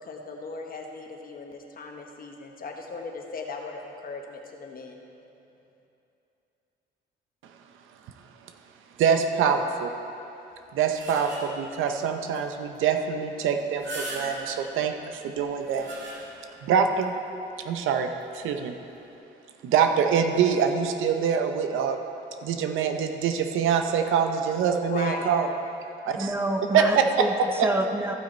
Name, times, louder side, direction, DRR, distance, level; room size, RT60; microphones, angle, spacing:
voice 1, 0.0-5.0 24.8-25.3, left 3 dB, 45° left, 2 dB, 1.2 m, -37 dB
voice 2, 9.0-9.9 10.7-15.9 16.6-17.1 17.6-18.8 19.6-22.0 22.4-25.5 26.0-26.3 26.7-27.3 27.6-27.7, right 7 dB, 85° right, 6 dB, 0.7 m, -24 dB
sound 1, 10.5-11.7 12.3-12.4 12.7-12.8 13.6-14.7 15.4-16.5 17.0-17.1 18.2-18.4, right 1 dB, 65° right, 2.0 m, -39 dB
voice 3, 26.2-28.1, right 1 dB, 10° right, 5 dB, 0.7 m, -28 dB
14.0 x 6.1 x 4.3 m, 2.9 s
cardioid pair, 90°, 20 cm